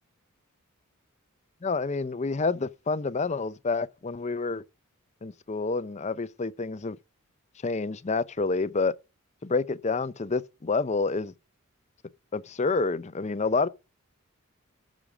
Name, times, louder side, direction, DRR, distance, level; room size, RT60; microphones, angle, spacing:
voice 1, 1.6-4.6 5.2-7.0 7.6-8.9 9.4-11.3 12.3-13.7, left 4 dB, 30° left, 0.5 m, -28 dB
14.0 x 6.4 x 4.9 m
head